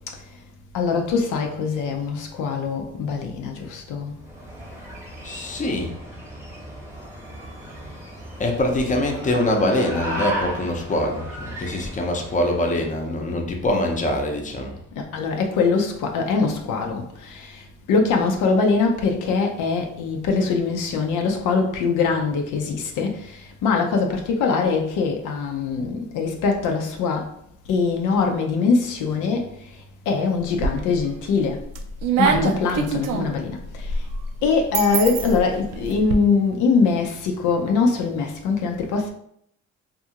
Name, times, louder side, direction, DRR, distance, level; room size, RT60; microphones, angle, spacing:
voice 1, 0.7-4.1 11.7-11.9 12.3-12.4 15.0-27.3 27.7-31.6 32.2-34.1 34.4-39.1, left 4 dB, 85° left, 0.5 m, -23 dB
sound 1, 4.2-12.8, right 1 dB, 10° right, 0.8 m, -35 dB
voice 2, 5.2-6.0 8.4-14.8, left 1 dB, 25° left, 0.6 m, -24 dB
sound 2, 30.4-31.1 31.5-36.1, right 5 dB, 85° right, 0.5 m, -25 dB
2.6 x 2.4 x 2.7 m
cardioid pair, 90°, 30 cm